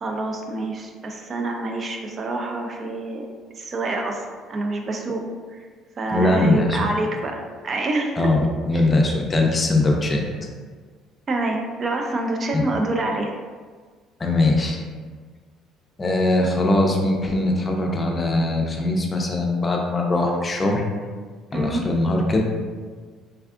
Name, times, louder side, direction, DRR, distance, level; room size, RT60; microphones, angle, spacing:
voice 1, 0.0-3.3 3.6-5.2 5.5-5.6 6.0-8.2 8.7-8.8 11.3-13.3 21.5-21.8, right 2 dB, 40° right, 2 dB, 0.3 m, -27 dB
voice 2, 6.1-6.9 8.2-10.2 12.5-12.6 14.2-14.8 16.0-20.8 21.5-22.4, left 2 dB, 30° left, 1 dB, 0.5 m, -21 dB
3.5 x 2.3 x 2.3 m, 1.5 s
supercardioid pair, 95°, 0 cm